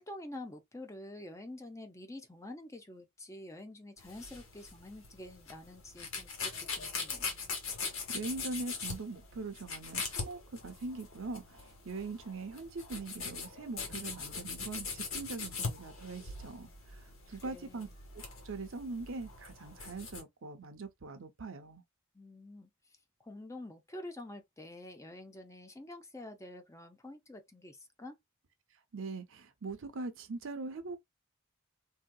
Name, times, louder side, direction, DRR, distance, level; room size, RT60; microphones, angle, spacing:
voice 1, 0.0-7.2 17.3-17.9 22.1-22.7 23.2-28.2, left 1 dB, 15° left, 0.5 m, -47 dB
sound 1, 4.0-20.2, left 4 dB, 75° left, 1.3 m, -42 dB
voice 2, 7.8-17.9 18.4-21.8 28.9-31.0, right 3 dB, 65° right, 0.7 m, -42 dB
3.4 x 2.8 x 2.3 m
head